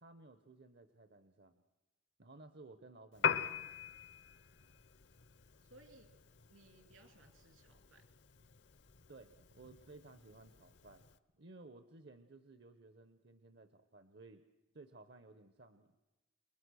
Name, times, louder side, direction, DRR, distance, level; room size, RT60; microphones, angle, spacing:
voice 1, 0.0-1.6 2.2-3.9 9.1-11.1 11.3-14.4 14.7-16.0, right 2 dB, 55° right, 10 dB, 0.9 m, -58 dB
Piano, 3.1-11.2, left 7 dB, 55° left, 0.7 m, -43 dB
voice 2, 5.6-6.2 6.5-8.1, right 2 dB, 75° right, 6 dB, 3.3 m, -62 dB
29.0 x 23.0 x 6.3 m, 1.1 s
head